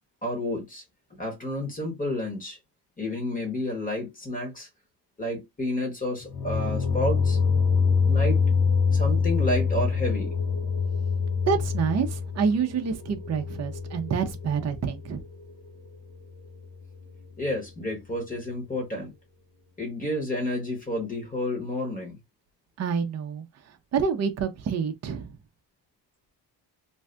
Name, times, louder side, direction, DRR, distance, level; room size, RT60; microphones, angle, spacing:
voice 1, 0.2-0.8 1.2-2.6 3.0-4.7 5.2-7.4 8.0-8.4 8.9-10.3 17.4-19.1 19.8-22.2, left 1 dB, 20° left, 1.2 m, -30 dB
sound 1, 6.2-15.2, left 5 dB, 60° left, 0.8 m, -25 dB
voice 2, 11.5-15.2 22.8-23.5 23.9-25.4, right 6 dB, 40° right, 0.6 m, -27 dB
2.6 x 2.3 x 3.2 m
cardioid pair, 140°, 43 cm